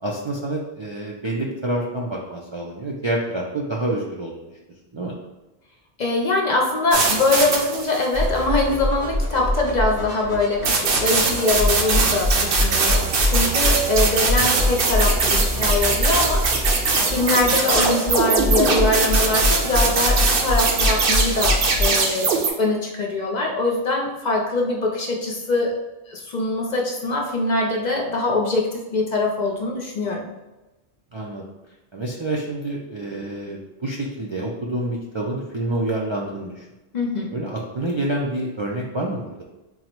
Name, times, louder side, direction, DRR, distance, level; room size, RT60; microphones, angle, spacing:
voice 1, 0.0-4.5 4.9-5.1 14.4-14.6 31.1-31.4 31.9-36.7 37.3-39.4, right 1 dB, 50° right, -3 dB, 0.3 m, -28 dB
voice 2, 6.0-16.5 17.1-25.7 26.1-30.3 36.9-37.4, left 2 dB, 55° left, 0 dB, 0.6 m, -23 dB
sound 1, 6.9-8.2 10.6-22.5, right 4 dB, 65° right, 0.8 m, -21 dB
sound 2, 8.1-21.8, left 1 dB, 85° right, 1.3 m, -24 dB
3.8 x 2.0 x 4.4 m, 1.0 s
omnidirectional pair, 1.1 m